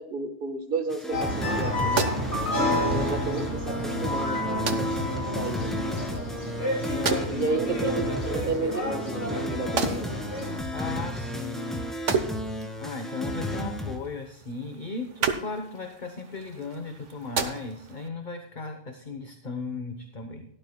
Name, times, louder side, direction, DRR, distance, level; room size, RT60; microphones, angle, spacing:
voice 1, 0.0-2.1 2.9-5.7 7.3-10.1, right 3 dB, 50° right, 6 dB, 1.6 m, -32 dB
sound 1, 0.9-14.0, equal, ahead, 2.2 m, -33 dB
sound 2, 1.1-10.6, left 1 dB, 65° left, 4.3 m, -30 dB
sound 3, 1.4-18.1, right 5 dB, 85° right, 1.4 m, -36 dB
voice 2, 2.5-3.0 4.8-4.9 6.9-7.7 10.7-11.9 12.8-20.5, left 4 dB, 45° left, 5 dB, 1.1 m, -36 dB
17.0 x 11.5 x 2.3 m, 0.77 s
omnidirectional pair, 1.2 m